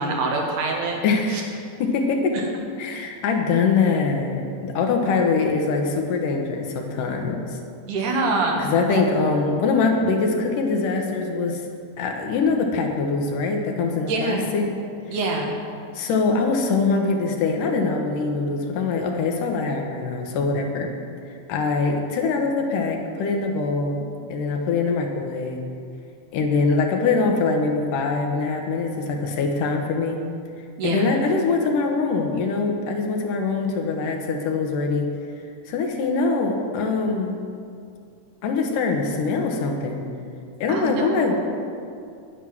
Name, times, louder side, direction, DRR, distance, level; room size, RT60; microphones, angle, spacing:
voice 1, 0.0-1.0 1.3-1.4 7.9-8.6 8.9-9.0 14.1-14.5 15.1-15.5 30.8-31.1 40.7-41.4, right 3 dB, 70° right, 0 dB, 2.8 m, -25 dB
voice 2, 1.0-2.4 2.8-7.6 8.6-11.6 12.0-14.7 15.9-20.9 21.5-24.0 24.3-25.6 26.3-30.2 30.8-35.1 35.7-37.4 38.4-40.0 40.6-41.4, left 4 dB, 80° left, 3 dB, 2.7 m, -23 dB
9.9 x 9.8 x 6.1 m, 2.4 s
omnidirectional pair, 3.8 m